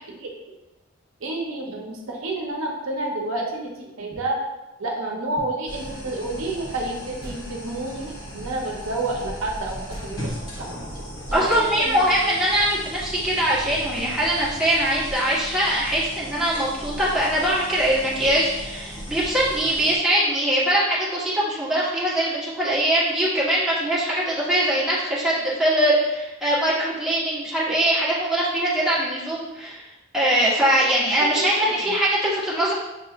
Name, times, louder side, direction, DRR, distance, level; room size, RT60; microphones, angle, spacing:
voice 1, 1.2-4.4 4.8-10.2 10.6-10.7 11.3-11.5 11.8-12.0 31.2-31.9, right 2 dB, 75° right, -1 dB, 0.7 m, -29 dB
sound 1, 5.7-20.0, equal, 65° left, 1.5 m, -37 dB
sound 2, 7.2-7.9 9.9-10.9, equal, 85° left, 1.3 m, -42 dB
voice 2, 11.3-29.8 30.1-32.7, right 1 dB, 5° right, -9 dB, 1.1 m, -22 dB
6.6 x 2.9 x 2.4 m, 1.0 s
head